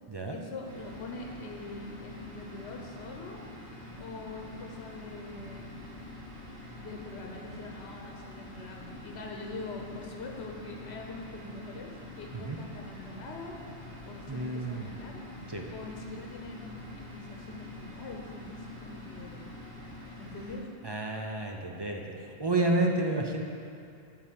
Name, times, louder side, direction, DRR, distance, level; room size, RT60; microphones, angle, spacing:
voice 1, 0.3-3.4 4.0-5.6 6.8-13.6 14.1-15.2 15.7-19.5 20.2-20.6, left 3 dB, 70° left, 1 dB, 1.1 m, -43 dB
sound 1, 0.6-20.6, left 1 dB, 60° right, 2.3 m, -46 dB
voice 2, 14.3-14.9 15.5-15.7 20.8-23.4, right 2 dB, 30° right, 1 dB, 0.5 m, -30 dB
11.0 x 3.9 x 7.4 m, 2.4 s
omnidirectional pair, 1.2 m